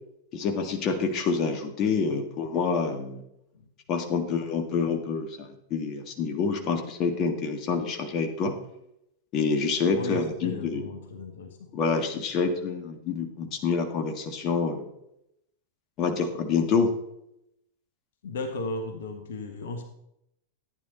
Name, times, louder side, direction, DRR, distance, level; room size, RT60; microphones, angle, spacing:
voice 1, 0.3-3.2 3.9-8.5 9.3-10.9 11.7-14.9 16.0-16.9, left 5 dB, 35° left, 6 dB, 1.7 m, -27 dB
voice 2, 9.9-11.7 18.2-19.8, left 2 dB, 60° left, 6 dB, 1.5 m, -35 dB
14.0 x 9.7 x 4.0 m, 0.80 s
figure-of-eight pair, 90°, 0 cm